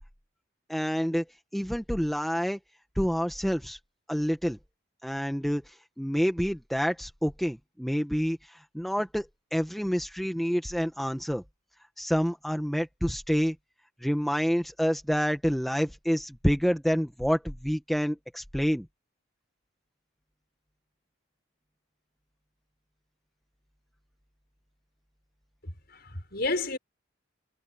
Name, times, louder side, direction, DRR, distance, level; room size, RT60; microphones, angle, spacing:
voice 1, 0.7-1.2 1.5-2.6 3.0-3.8 4.1-4.6 5.0-5.6 6.0-11.4 12.0-13.5 14.0-18.8, equal, ahead, 1.2 m, -28 dB
voice 2, 25.6-26.8, left 2 dB, 50° left, 6.3 m, -31 dB
head